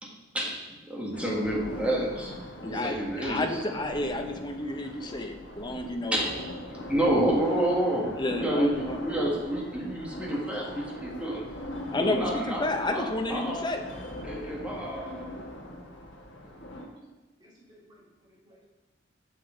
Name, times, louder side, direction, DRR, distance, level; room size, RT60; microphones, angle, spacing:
voice 1, 0.0-2.3 2.6-3.6 4.6-5.1 6.1-6.3 6.7-11.4 12.0-13.6 14.2-15.3 16.4-16.7, right 1 dB, 5° right, -4 dB, 1.6 m, -29 dB
sound 1, 1.1-16.8, left 1 dB, 70° left, 1.1 m, -41 dB
voice 2, 2.6-6.2 8.2-9.0 11.9-13.8, left 2 dB, 25° left, 4 dB, 0.7 m, -31 dB
voice 3, 16.5-18.7, equal, 25° right, -7 dB, 2.4 m, -57 dB
7.1 x 6.0 x 3.9 m, 1.2 s
head